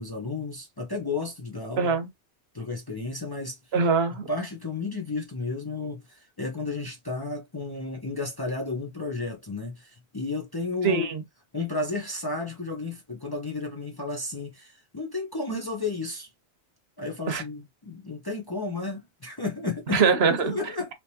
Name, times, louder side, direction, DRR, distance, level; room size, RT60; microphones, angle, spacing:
voice 1, 0.0-1.9 2.5-3.6 4.3-11.1 11.5-16.3 17.0-20.0 20.4-20.9, left 3 dB, 25° left, 0.6 m, -32 dB
voice 2, 1.8-2.1 3.7-4.3 10.8-11.2 17.3-17.4 19.9-20.6, right 5 dB, 70° right, 1.0 m, -23 dB
3.4 x 2.9 x 2.7 m
omnidirectional pair, 1.1 m